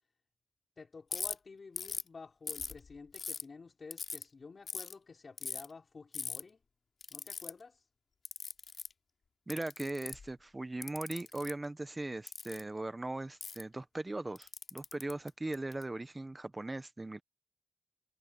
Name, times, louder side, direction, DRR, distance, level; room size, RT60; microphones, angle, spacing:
voice 1, 0.8-6.6 7.1-7.9, left 4 dB, 55° left, 5.6 m, -51 dB
Ratchet pawl, 1.1-1.3 1.8-2.1 2.5-3.4 3.9-4.2 4.7-4.9 5.4-5.7 6.1-6.4 7.0-7.5 8.3-8.9 9.5-10.3 10.8-11.5 12.3-12.6 13.4-13.6 14.4-15.8, left 5 dB, 70° left, 4.0 m, -40 dB
voice 2, 9.5-17.2, right 2 dB, 25° right, 1.1 m, -39 dB
wide cardioid pair, 105°, 0 cm